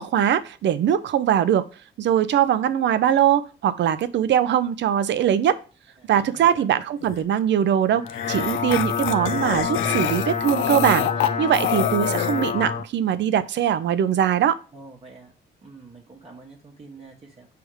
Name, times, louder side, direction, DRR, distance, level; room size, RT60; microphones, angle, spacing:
voice 1, 0.0-1.7 2.0-5.6 6.1-11.1 11.4-14.6, right 10 dB, 65° right, 14 dB, 0.6 m, -21 dB
voice 2, 6.0-6.6 14.7-15.3 15.6-17.5, right 3 dB, 30° right, -1 dB, 1.2 m, -46 dB
sound 1, 7.0-7.2 8.1-12.5, left 12 dB, 85° left, 0.5 m, -28 dB
sound 2, 7.9-12.8, left 6 dB, 35° left, 0.6 m, -27 dB
6.3 x 3.5 x 4.8 m, 0.35 s
cardioid pair, 90°, 20 cm